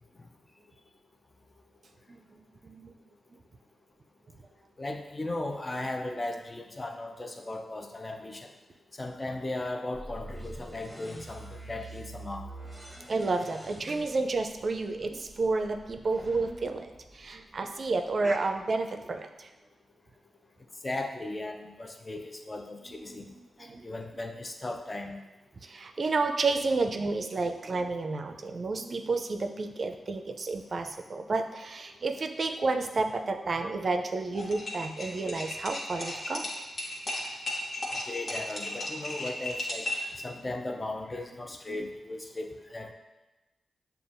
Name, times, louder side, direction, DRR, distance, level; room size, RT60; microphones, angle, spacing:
voice 1, 2.1-2.9 13.1-19.5 22.9-23.8 25.6-36.5 41.7-41.9, right 3 dB, 55° right, 6 dB, 0.4 m, -31 dB
voice 2, 4.8-8.5 9.0-12.4 18.2-18.5 20.8-23.2 23.8-25.2 38.1-39.8 40.2-42.9, left 2 dB, 35° left, 4 dB, 0.5 m, -37 dB
sound 1, 9.9-17.8, right 1 dB, 5° left, 1.1 m, -46 dB
sound 2, 34.3-40.1, left 1 dB, 60° left, 1.1 m, -35 dB
6.8 x 2.3 x 2.5 m, 1.1 s
supercardioid pair, 40°, 0 cm